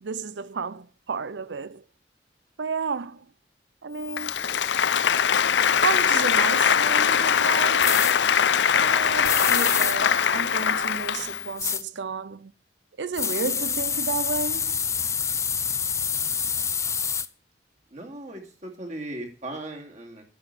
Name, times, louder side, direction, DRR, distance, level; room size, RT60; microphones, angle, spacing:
voice 1, 0.0-1.8 2.6-3.3 3.8-4.5 5.6-8.1 8.7-12.5 13.0-14.9, right 5 dB, 80° right, 0.6 m, -32 dB
Applause, 4.1-11.5, left 7 dB, 75° left, 0.6 m, -22 dB
sound 1, 7.8-8.1 9.2-10.0 11.6-11.8 13.1-17.3, left 7 dB, 15° left, 0.4 m, -27 dB
voice 2, 17.9-20.2, right 1 dB, 40° right, 2.5 m, -37 dB
10.0 x 6.1 x 8.2 m
head